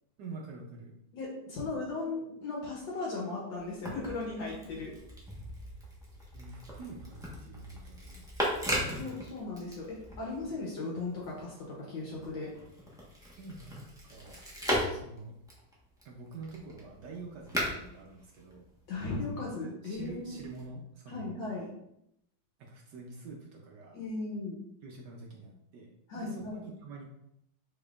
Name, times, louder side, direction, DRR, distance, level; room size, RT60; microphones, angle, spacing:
voice 1, 0.2-1.0 6.3-8.3 8.6-9.1 13.4-14.4 14.9-15.3 16.0-18.6 19.3-19.6 19.8-21.4 22.6-24.0 24.8-27.0, right 3 dB, 70° right, -1 dB, 1.1 m, -46 dB
voice 2, 1.1-4.9 9.0-12.5 18.9-20.4 21.1-21.7 23.9-24.6 26.1-26.6, left 3 dB, 70° left, -3 dB, 1.6 m, -37 dB
sound 1, 3.6-10.5 10.9-19.0 19.9-20.7, equal, 5° right, 0.5 m, -38 dB
5.2 x 3.7 x 2.4 m, 0.78 s
omnidirectional pair, 2.2 m